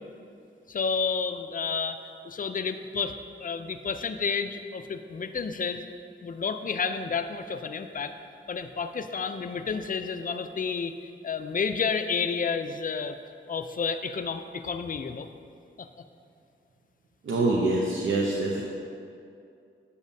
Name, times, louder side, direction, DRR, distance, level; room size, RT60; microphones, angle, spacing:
voice 1, 0.7-2.0 2.2-5.8 6.2-8.2 8.5-10.9 11.2-13.2 13.5-15.3 15.8-15.9, left 5 dB, 45° left, 9 dB, 0.4 m, -30 dB
voice 2, 17.2-18.6, right 2 dB, 80° right, -3 dB, 0.7 m, -25 dB
8.3 x 7.0 x 2.7 m, 2.5 s
cardioid pair, 55°, 20 cm